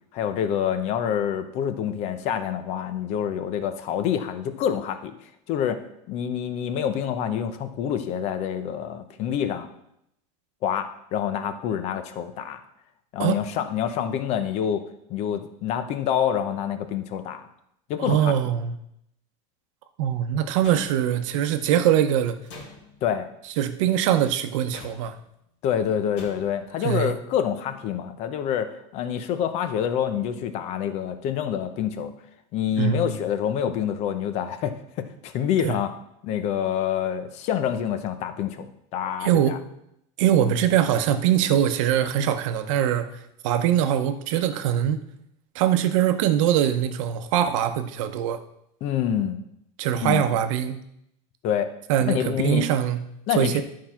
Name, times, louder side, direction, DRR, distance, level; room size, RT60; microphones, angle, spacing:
voice 1, 0.1-5.1 5.5-5.8 6.1-9.7 10.6-12.6 13.1-14.8 15.1-17.4 17.9-18.3 23.0-23.3 25.6-32.1 32.5-35.9 36.2-39.6 48.8-49.4 50.0-50.2 51.4-51.7 52.0-52.7 53.3-53.6, left 9 dB, 40° left, 9 dB, 0.8 m, -27 dB
voice 2, 18.0-18.7 20.0-22.4 23.6-25.1 26.8-27.2 32.8-33.1 35.6-35.7 39.2-39.6 40.2-43.1 43.4-45.0 45.5-48.4 49.8-50.8 51.9-53.0 53.3-53.6, right 10 dB, 70° right, 9 dB, 0.9 m, -22 dB
sound 1, 20.6-21.4 22.5-23.1 24.7-25.3 26.2-26.7, left 3 dB, 70° left, 2.4 m, -44 dB
11.0 x 4.8 x 5.8 m, 0.78 s
supercardioid pair, 165°, 17 cm